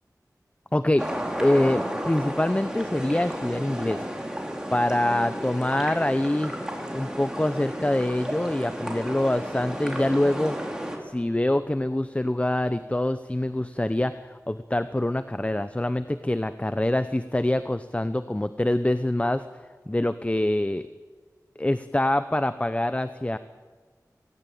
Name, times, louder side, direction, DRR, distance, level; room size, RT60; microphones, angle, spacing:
voice 1, 0.7-1.1 1.4-4.4 4.7-6.5 6.9-10.6 11.0-19.4 19.9-20.9 21.6-23.4, left 1 dB, 20° left, 12 dB, 0.7 m, -25 dB
sound 1, 1.0-11.0, equal, 10° right, 3.9 m, -33 dB
18.0 x 17.5 x 8.6 m, 1.5 s
wide cardioid pair, 45°, 7 cm